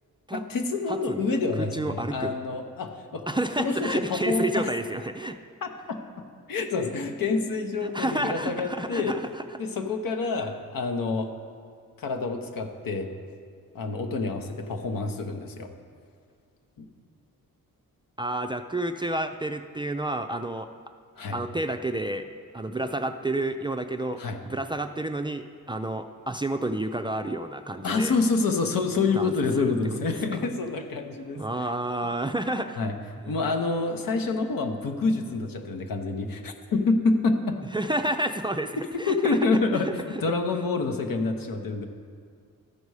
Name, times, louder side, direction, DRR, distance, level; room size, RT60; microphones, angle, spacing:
voice 1, 0.3-3.3 3.6-4.7 5.6-6.0 6.5-9.2 9.6-11.3 12.0-13.1 13.7-15.7 16.8-16.9 21.2-21.4 24.2-24.4 27.8-31.7 32.8-32.9 33.3-37.6 39.1-39.9 40.2-41.8, left 3 dB, 75° left, 5 dB, 1.0 m, -27 dB
voice 2, 0.9-2.3 3.3-5.4 7.8-9.4 18.2-20.7 21.3-22.2 22.5-28.1 29.1-29.3 29.6-29.7 30.3-30.5 31.4-32.8 33.2-33.4 37.7-39.4 39.7-40.2, right 1 dB, 15° right, 6 dB, 0.4 m, -30 dB
13.0 x 5.3 x 4.8 m, 2.1 s
cardioid pair, 65°, 35 cm